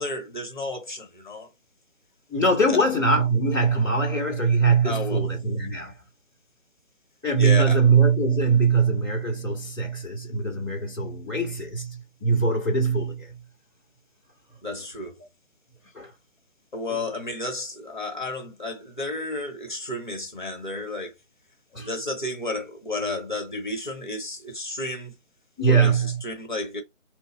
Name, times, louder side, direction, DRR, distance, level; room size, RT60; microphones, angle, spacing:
voice 1, 0.0-1.5 2.7-2.8 4.8-5.3 7.3-7.8 14.6-15.1 16.7-21.1 21.8-25.2 25.7-26.8, left 2 dB, 35° left, 0.9 m, -32 dB
voice 2, 2.3-6.0 7.2-13.4 15.9-16.1 16.9-17.0 21.7-21.9 25.6-26.2, right 4 dB, 5° right, 1.0 m, -22 dB
3.2 x 2.3 x 4.1 m
figure-of-eight pair, 170°, 39 cm